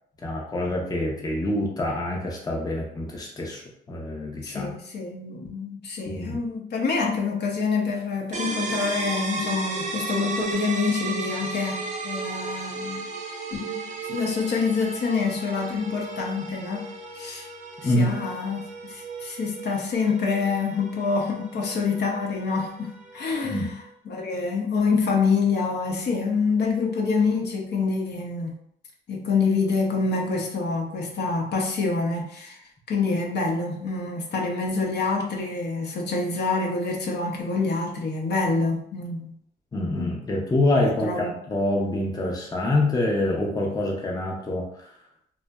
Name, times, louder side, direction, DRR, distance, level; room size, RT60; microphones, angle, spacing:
voice 1, 0.2-3.6 3.9-4.7 6.1-6.4 17.8-18.2 23.4-23.7 39.7-44.9, left 1 dB, 20° left, -1 dB, 0.5 m, -26 dB
voice 2, 4.4-13.1 13.5-16.9 17.1-17.5 17.8-18.6 18.9-23.7 24.1-28.6 29.1-32.6 32.9-39.3 40.0-40.1 40.8-41.3, left 4 dB, 60° left, -1 dB, 0.6 m, -26 dB
sound 1, 8.3-23.9, right 3 dB, 40° right, 0.5 m, -35 dB
2.7 x 2.1 x 2.2 m, 0.68 s
cardioid pair, 90°, 20 cm